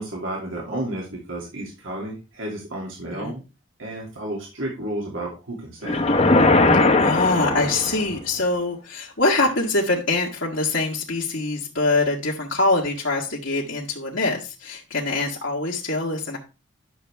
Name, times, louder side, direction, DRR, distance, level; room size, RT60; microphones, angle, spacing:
voice 1, 0.0-3.4 3.8-6.0, right 1 dB, 80° right, -2 dB, 2.7 m, -32 dB
sound 1, 5.8-8.2, left 2 dB, 35° left, 1.0 m, -19 dB
voice 2, 7.0-16.4, left 2 dB, 65° left, -4 dB, 1.6 m, -24 dB
11.0 x 6.8 x 3.4 m, 0.30 s
head